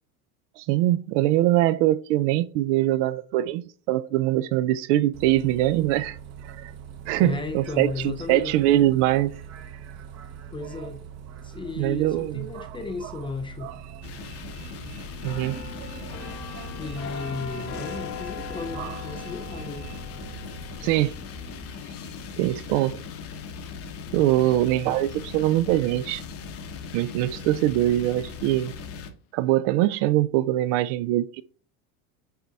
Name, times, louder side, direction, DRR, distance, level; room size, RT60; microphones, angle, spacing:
voice 1, 0.6-6.2 6.4-6.7 7.1-9.3 11.8-12.7 13.6-13.7 15.2-15.6 18.8-18.9 20.8-21.1 22.4-23.0 24.1-26.2 26.9-28.7 29.3-31.4, right 14 dB, 55° right, 0.5 m, -23 dB
Bus, 5.1-20.8, right 8 dB, 35° right, 0.9 m, -42 dB
voice 2, 7.2-8.5 10.5-11.0 11.4-13.7 16.8-19.9, left 4 dB, 10° left, 0.4 m, -34 dB
sound 1, 14.0-29.1, left 5 dB, 30° left, 0.8 m, -39 dB
sound 2, 15.2-26.8 27.2-27.5, left 7 dB, 80° left, 1.1 m, -42 dB
6.7 x 4.1 x 3.4 m
supercardioid pair, 130°, 43 cm